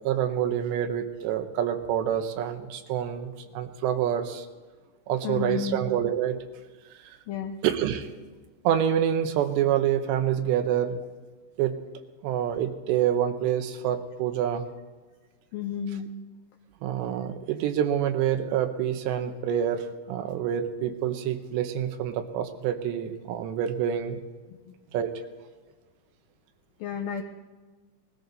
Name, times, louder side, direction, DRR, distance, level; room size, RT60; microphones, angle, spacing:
voice 1, 0.0-4.5 5.1-6.4 7.6-8.1 8.6-11.0 11.6-11.8 12.2-14.6 16.8-24.2 24.9-25.1, right 10 dB, 85° right, 8 dB, 3.2 m, -27 dB
voice 2, 5.2-5.8 7.3-7.6 15.5-16.1 24.5-24.7 26.8-27.2, left 8 dB, 90° left, 5 dB, 2.0 m, -32 dB
20.5 x 14.0 x 4.0 m, 1.4 s
omnidirectional pair, 5.0 m